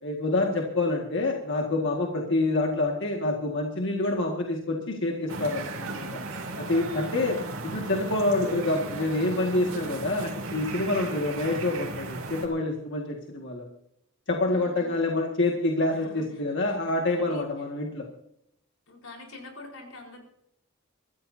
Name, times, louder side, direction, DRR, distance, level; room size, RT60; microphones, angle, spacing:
voice 1, 0.0-6.1 6.6-7.4 7.6-13.7 14.3-18.1, left 2 dB, 60° left, 1 dB, 1.9 m, -27 dB
sound 1, 5.3-12.5, right 2 dB, 85° right, 2.8 m, -36 dB
voice 2, 14.4-15.1 15.9-16.4 16.7-17.7 18.9-20.2, left 2 dB, 90° left, 1 dB, 4.4 m, -46 dB
23.5 x 14.5 x 2.7 m, 0.74 s
head